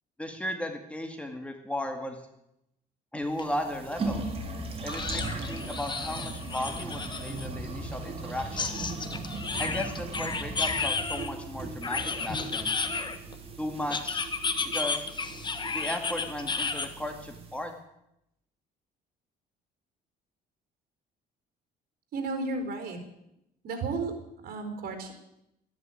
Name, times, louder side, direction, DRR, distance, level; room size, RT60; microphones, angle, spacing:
voice 1, 0.2-2.2 3.1-4.2 4.8-8.8 9.6-12.7 13.6-14.3 14.7-15.1 15.7-17.7, left 1 dB, 5° left, 5 dB, 2.1 m, -35 dB
sound 1, 3.3-17.6, right 3 dB, 35° right, 3.5 m, -38 dB
sound 2, 3.4-3.5 3.8-3.9 4.9-7.5 8.6-11.3 11.8-13.3 13.9-16.9, left 4 dB, 25° left, 1.4 m, -32 dB
voice 2, 22.1-23.0 23.6-24.1 24.4-25.1, right 3 dB, 60° right, 6 dB, 4.3 m, -33 dB
13.0 x 11.0 x 9.2 m, 0.82 s
cardioid pair, 110°, 17 cm